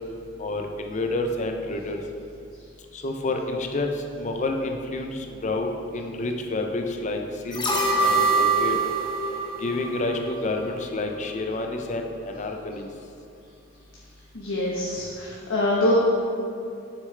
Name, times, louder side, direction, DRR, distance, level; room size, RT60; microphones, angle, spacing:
voice 1, 0.4-2.0 2.9-7.6 8.0-8.8 9.6-12.9, left 2 dB, 35° left, 3 dB, 0.5 m, -29 dB
sound 1, 7.5-10.7 11.0-11.1, right 3 dB, 20° left, 1.0 m, -24 dB
voice 2, 14.3-15.9, left 1 dB, 80° left, -6 dB, 1.1 m, -25 dB
7.3 x 6.4 x 3.3 m, 2.6 s
head